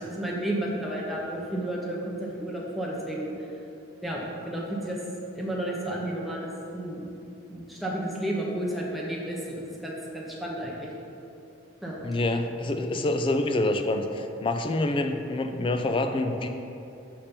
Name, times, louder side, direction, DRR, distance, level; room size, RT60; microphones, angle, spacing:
voice 1, 0.0-3.5 4.0-5.0 5.3-7.1 7.5-10.9 11.8-12.0, right 1 dB, ahead, -4 dB, 0.8 m, -32 dB
voice 2, 12.0-16.5, left 2 dB, 25° left, 6 dB, 0.3 m, -26 dB
6.8 x 2.9 x 5.2 m, 2.8 s
head